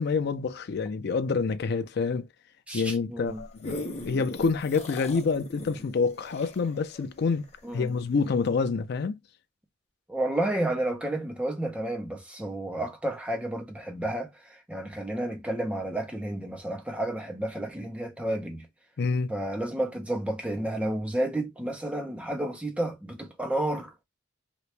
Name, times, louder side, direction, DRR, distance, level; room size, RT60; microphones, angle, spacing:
voice 1, 0.0-2.3 2.7-7.5 7.7-9.2 19.0-19.3, left 4 dB, 55° left, 0.4 m, -27 dB
voice 2, 2.7-3.4 7.6-8.0 10.1-18.7 19.3-24.0, right 1 dB, 5° right, 0.7 m, -31 dB
sound 1, 3.3-7.9 8.5-8.6, left 2 dB, 35° left, 0.7 m, -39 dB
2.9 x 2.5 x 3.2 m
head